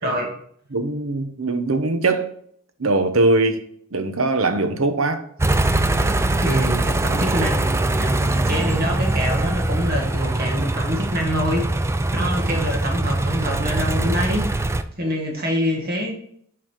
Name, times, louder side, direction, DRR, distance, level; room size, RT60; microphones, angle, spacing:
voice 1, 0.0-0.3 6.4-11.7 12.1-14.5 15.0-16.1, equal, 50° right, 1.7 m, -25 dB
voice 2, 0.7-2.4 2.8-3.6 3.9-5.2 12.2-12.3, right 2 dB, 85° right, 0.9 m, -21 dB
sound 1, 5.4-14.8, right 2 dB, 15° right, 0.4 m, -22 dB
7.4 x 4.2 x 4.4 m
head